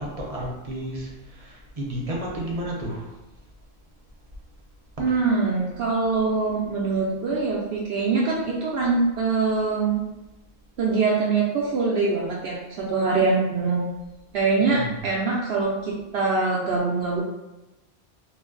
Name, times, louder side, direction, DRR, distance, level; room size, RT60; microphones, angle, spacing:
voice 1, 0.0-3.1 5.1-5.2 14.7-15.0, right 1 dB, 40° right, -3 dB, 0.7 m, -32 dB
voice 2, 5.0-10.0 10.8-13.8 14.3-17.2, right 4 dB, 70° right, -5 dB, 0.8 m, -23 dB
3.1 x 2.0 x 3.7 m, 1.0 s
omnidirectional pair, 1.1 m